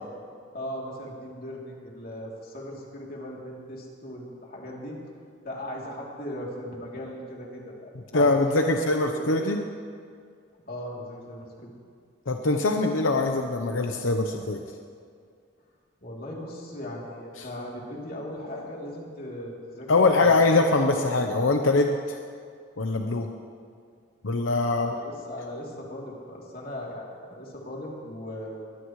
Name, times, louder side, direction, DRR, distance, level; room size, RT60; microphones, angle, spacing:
voice 1, 0.5-5.0 5.4-8.7 9.1-9.4 10.7-11.7 16.0-20.5 24.7-28.6, left 1 dB, 50° left, -3 dB, 3.2 m, -38 dB
voice 2, 8.1-9.6 12.3-14.6 19.9-22.0 22.8-23.3 24.2-24.9, left 3 dB, 85° left, 4 dB, 0.9 m, -22 dB
23.0 x 18.5 x 3.2 m, 2.2 s
head